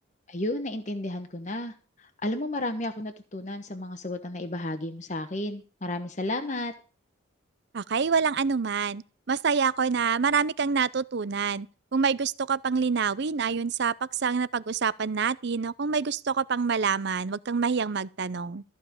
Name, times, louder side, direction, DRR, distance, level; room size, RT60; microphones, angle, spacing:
voice 1, 0.3-6.7, left 1 dB, 35° left, 1.1 m, -33 dB
voice 2, 7.7-9.0 9.3-11.7 11.9-18.6, right 5 dB, 50° right, 0.5 m, -26 dB
14.5 x 5.4 x 8.6 m
head